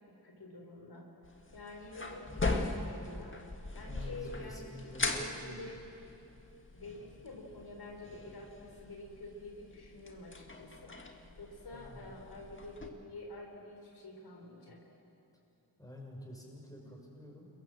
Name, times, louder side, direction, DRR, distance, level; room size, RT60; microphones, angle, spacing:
voice 1, 0.1-1.1 1.5-3.4 3.7-5.8 6.7-14.8 16.8-17.0, left 2 dB, 70° left, 0 dB, 4.5 m, -48 dB
sound 1, 1.2-12.9, left 2 dB, 30° left, 1.9 m, -40 dB
voice 2, 3.9-5.7 11.7-12.1 15.8-17.5, left 1 dB, 10° left, -1 dB, 6.0 m, -49 dB
28.5 x 22.5 x 7.7 m, 2.8 s
wide cardioid pair, 95°, 41 cm